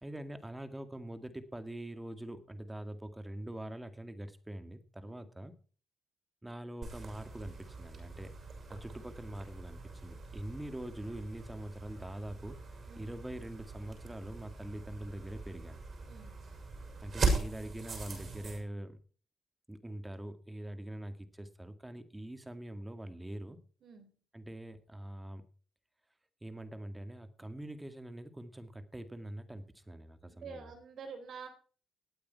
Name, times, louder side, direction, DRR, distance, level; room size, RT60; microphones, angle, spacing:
voice 1, 0.0-5.5 6.4-8.3 8.7-12.6 13.0-15.8 17.0-19.0 19.7-23.6 24.3-25.4 26.4-30.7, right 1 dB, 10° right, 9 dB, 1.9 m, -44 dB
sound 1, 6.8-18.6, right 3 dB, 45° right, 6.2 m, -40 dB
voice 2, 30.2-31.5, right 5 dB, 65° right, 6 dB, 4.0 m, -47 dB
18.5 x 8.6 x 4.6 m, 0.41 s
cardioid pair, 90°, 0 cm